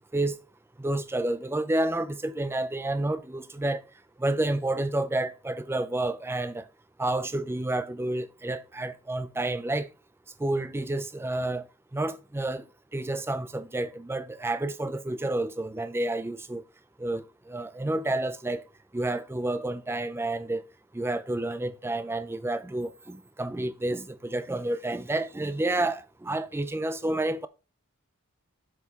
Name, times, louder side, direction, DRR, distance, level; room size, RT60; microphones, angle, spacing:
voice 1, 0.8-3.8 4.2-6.6 7.0-9.9 10.4-11.6 11.9-12.6 12.9-16.6 17.0-18.6 18.9-20.6 20.9-27.5, right 2 dB, 10° right, 0.4 m, -30 dB
7.7 x 5.6 x 2.9 m
head